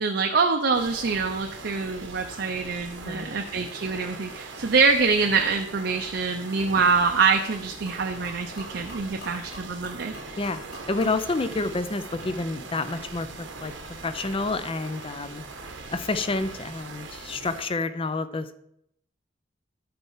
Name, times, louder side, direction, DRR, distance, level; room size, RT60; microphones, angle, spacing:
voice 1, 0.0-10.4, right 4 dB, 65° right, 4 dB, 0.6 m, -25 dB
sound 1, 0.7-17.6, right 3 dB, 90° right, 1.2 m, -41 dB
voice 2, 3.0-3.4 10.4-13.7 14.0-15.4 15.9-18.6, left 3 dB, 30° left, 11 dB, 0.5 m, -29 dB
Gurgling / Liquid, 6.6-13.4, equal, 60° left, 3.5 m, -47 dB
11.5 x 4.3 x 5.6 m, 0.74 s
head